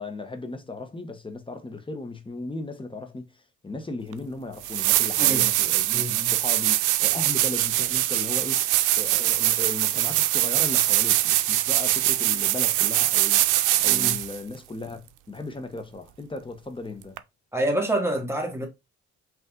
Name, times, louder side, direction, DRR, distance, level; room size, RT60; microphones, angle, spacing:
voice 1, 0.0-3.3 3.6-6.0 6.3-13.4 13.8-17.2, left 2 dB, 15° left, 1.0 m, -36 dB
sound 1, 4.1-4.2 4.6-14.4 17.2-17.3, right 15 dB, 85° right, 0.5 m, -23 dB
voice 2, 5.9-6.3 13.9-14.2 17.5-18.7, right 1 dB, 10° right, 1.5 m, -27 dB
5.4 x 2.5 x 3.7 m
cardioid pair, 90°, 30 cm